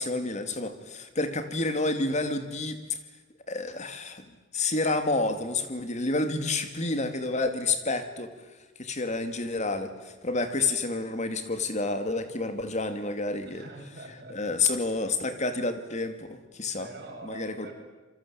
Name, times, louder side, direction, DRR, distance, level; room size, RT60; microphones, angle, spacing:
voice 1, 0.0-3.0 3.5-4.3 4.5-8.3 8.8-13.6 14.3-16.9 17.2-17.7, left 3 dB, 35° left, 9 dB, 2.6 m, -29 dB
voice 2, 13.4-14.6 16.8-17.7, right 2 dB, 55° right, 1 dB, 7.6 m, -44 dB
27.5 x 24.0 x 8.8 m, 1.2 s
head